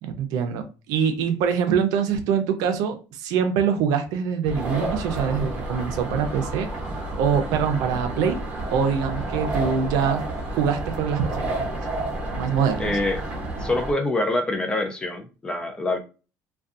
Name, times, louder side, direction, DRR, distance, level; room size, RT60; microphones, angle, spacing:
voice 1, 0.0-6.7 7.2-8.4 8.7-10.3 10.5-11.8 12.4-12.9, right 7 dB, 70° right, 7 dB, 0.5 m, -24 dB
sound 1, 4.4-13.9, right 2 dB, 20° right, 0.7 m, -30 dB
voice 2, 12.8-13.2 13.6-16.0, left 2 dB, 15° left, 6 dB, 0.4 m, -25 dB
2.5 x 2.3 x 2.4 m, 0.33 s
cardioid pair, 160°, 7 cm